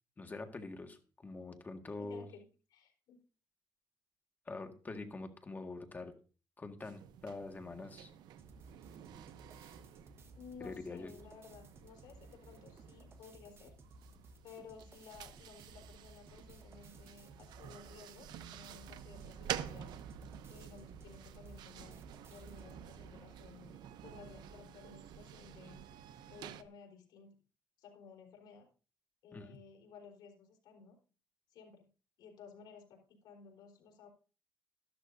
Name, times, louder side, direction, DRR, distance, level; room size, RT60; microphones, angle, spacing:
voice 1, 0.2-2.2 4.4-6.1 6.6-8.1 10.6-11.1 29.3-29.6, left 3 dB, 25° left, 5 dB, 1.7 m, -45 dB
voice 2, 2.0-3.2 10.4-13.7 14.4-19.9 20.5-22.0 22.3-25.8 26.3-27.4 27.8-28.7 29.2-31.0 31.5-31.9 32.2-34.1, left 6 dB, 80° left, 1 dB, 3.9 m, -55 dB
sound 1, 6.8-26.6, right 10 dB, 85° right, 0.7 m, -49 dB
sound 2, 8.4-22.8, right 2 dB, 35° right, 1.3 m, -59 dB
13.0 x 12.0 x 2.6 m, 0.36 s
cardioid pair, 110°, 7 cm